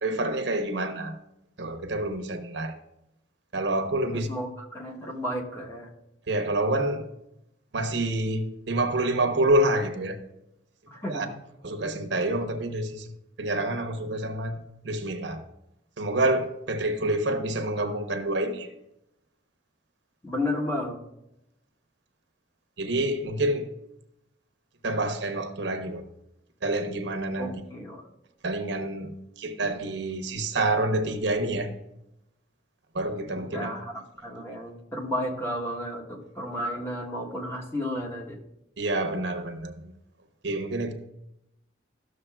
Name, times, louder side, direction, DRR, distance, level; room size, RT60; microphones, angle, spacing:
voice 1, 0.0-1.2 1.6-2.8 3.5-4.3 6.3-7.0 7.7-10.2 11.1-11.3 11.6-13.1 13.4-15.4 16.0-18.7 22.8-23.7 24.8-26.0 26.6-27.5 28.4-31.7 32.9-33.7 38.8-39.9 40.4-40.9, right 1 dB, 70° right, 0.8 m, -27 dB
voice 2, 4.3-5.9 10.9-11.3 20.2-21.0 27.4-28.1 33.5-33.9 34.2-38.4, left 1 dB, 15° left, 1.0 m, -32 dB
13.0 x 6.4 x 2.3 m
head